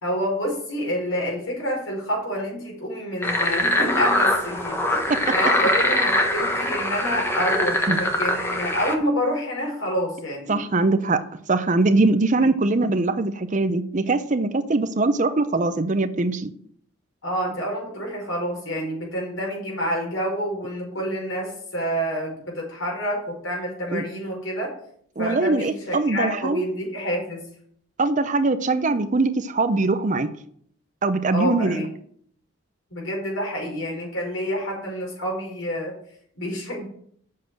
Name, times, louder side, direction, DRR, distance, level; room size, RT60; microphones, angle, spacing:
voice 1, 0.0-10.6 12.4-12.5 17.2-24.7 25.2-27.5 31.3-31.9 32.9-35.9 36.3-36.9, equal, 70° left, -1 dB, 4.9 m, -28 dB
sound 1, 3.2-8.9, left 1 dB, 10° left, 1.1 m, -23 dB
voice 2, 10.5-11.2 11.5-16.5 23.9-24.0 25.2-26.6 28.0-30.3 31.0-31.9, right 3 dB, 35° right, 10 dB, 0.6 m, -22 dB
7.5 x 6.2 x 7.7 m, 0.63 s
head